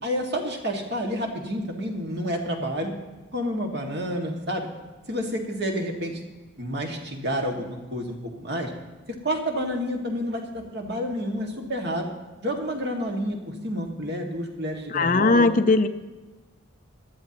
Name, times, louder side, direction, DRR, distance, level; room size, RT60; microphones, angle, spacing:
voice 1, 0.0-2.9 3.3-4.7 5.1-6.2 6.6-8.7 9.2-12.1 12.4-15.5, equal, 50° right, 1 dB, 2.0 m, -29 dB
voice 2, 14.9-15.9, left 3 dB, 40° left, 10 dB, 0.5 m, -19 dB
18.5 x 12.5 x 3.0 m, 1.2 s
head